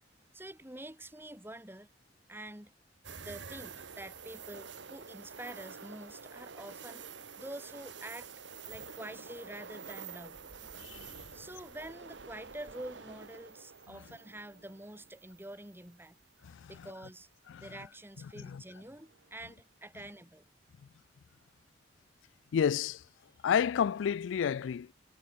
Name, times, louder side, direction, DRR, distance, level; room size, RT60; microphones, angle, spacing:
voice 1, 0.3-1.9 2.3-2.7 3.2-7.0 7.4-8.3 8.7-10.5 11.3-16.2 16.7-17.3 17.6-20.4, right 1 dB, 10° right, 3.2 m, -47 dB
sound 1, 3.0-16.1 16.5-16.6 19.0-19.4, right 5 dB, 70° right, 1.7 m, -48 dB
voice 2, 10.8-11.2 16.4-16.7 17.5-17.7 18.4-18.6 22.5-23.0 23.4-24.9, left 8 dB, 85° left, 0.3 m, -30 dB
head